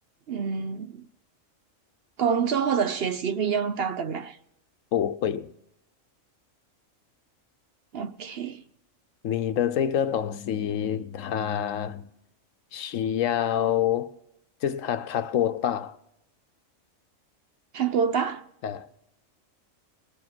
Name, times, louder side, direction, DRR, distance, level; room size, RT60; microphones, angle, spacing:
voice 1, 0.3-1.0 2.2-4.4 7.9-8.6 17.7-18.4, right 6 dB, 55° right, 0.8 m, -27 dB
voice 2, 4.9-5.5 9.2-12.1 12.7-14.1 14.6-16.0 18.6-18.9, left 10 dB, 75° left, 1.1 m, -27 dB
21.5 x 7.2 x 6.0 m
omnidirectional pair, 1.4 m